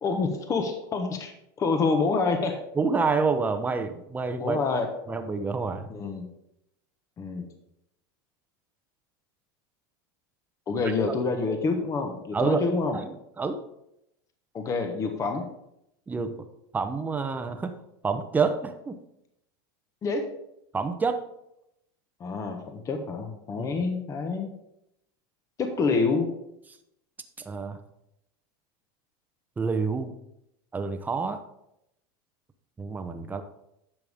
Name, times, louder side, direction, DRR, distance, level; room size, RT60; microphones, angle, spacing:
voice 1, 0.0-2.6 4.4-4.9 5.9-6.3 7.2-7.5 10.7-13.0 14.5-15.5 20.0-20.2 22.2-24.5 25.6-26.3, left 4 dB, 25° left, 5 dB, 1.2 m, -27 dB
voice 2, 2.8-4.6 5.1-5.9 12.3-13.1 13.4-13.6 16.1-16.3 16.7-17.8 18.0-19.0 20.7-21.2 23.6-23.8 27.4-27.8 29.6-30.1 30.7-31.4 32.8-33.4, right 4 dB, 15° right, 8 dB, 0.8 m, -28 dB
10.5 x 6.9 x 3.6 m, 0.81 s
supercardioid pair, 120°, 12 cm